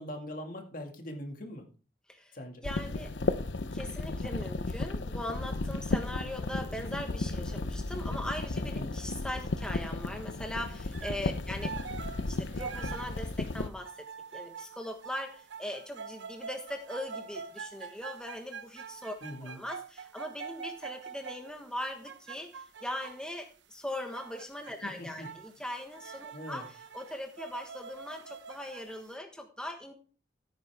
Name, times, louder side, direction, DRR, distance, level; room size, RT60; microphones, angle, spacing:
voice 1, 0.0-1.7 2.3-2.6 8.5-8.9 11.2-11.4 19.2-19.6 24.8-25.3 26.3-26.7, left 1 dB, 50° left, 3 dB, 2.2 m, -41 dB
sound 1, 2.6-13.7, left 2 dB, 90° left, 0.8 m, -34 dB
voice 2, 2.6-3.3 3.7-11.9 12.2-19.1 19.4-29.9, left 1 dB, 5° left, 3 dB, 1.3 m, -40 dB
sound 2, 10.9-11.2 11.6-23.3 24.1-24.8 25.1-25.6 25.9-29.0, right 6 dB, 90° right, 0.9 m, -45 dB
15.5 x 9.2 x 3.5 m, 0.38 s
head